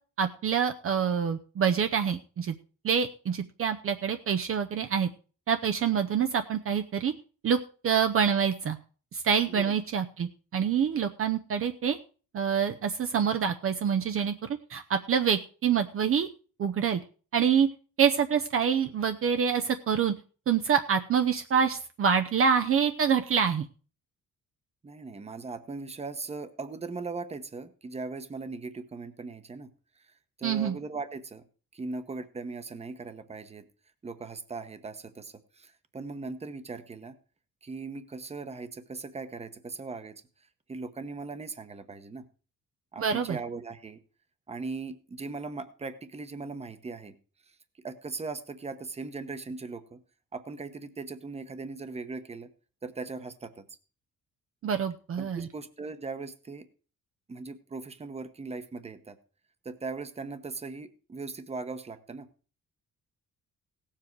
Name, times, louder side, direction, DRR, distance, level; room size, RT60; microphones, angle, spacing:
voice 1, 0.2-2.5 2.8-5.1 5.5-7.1 7.4-7.6 7.8-8.8 9.1-12.0 12.3-16.3 16.6-17.0 17.3-17.7 18.0-20.1 20.5-23.7 30.4-30.8 43.0-43.4 54.6-55.5, right 7 dB, 45° right, 7 dB, 0.7 m, -26 dB
voice 2, 24.8-29.7 30.0-30.1 30.4-31.4 31.7-33.7 34.0-37.2 37.6-40.2 40.7-42.3 42.9-44.0 44.5-47.2 47.8-50.0 50.3-52.5 52.8-53.7 55.2-56.7 57.3-59.2 59.6-62.3, right 3 dB, 20° right, 11 dB, 1.0 m, -39 dB
17.5 x 7.5 x 4.6 m, 0.38 s
cardioid pair, 160°, 32 cm